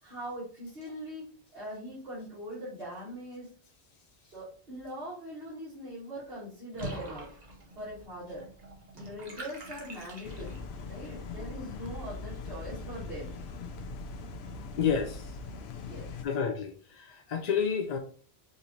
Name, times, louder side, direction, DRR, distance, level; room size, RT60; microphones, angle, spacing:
voice 1, 0.0-3.5 4.2-7.4 7.8-8.4 8.9-13.3 15.8-16.1, equal, 65° right, 2.1 m, -42 dB
Water / Bathtub (filling or washing), 6.7-10.8, right 2 dB, 40° right, 1.1 m, -44 dB
sound 1, 10.2-16.2, left 3 dB, 80° left, 0.8 m, -41 dB
voice 2, 14.8-15.2 16.2-16.7 17.3-18.0, left 7 dB, 55° left, 0.5 m, -28 dB
5.2 x 2.7 x 3.0 m
omnidirectional pair, 1.1 m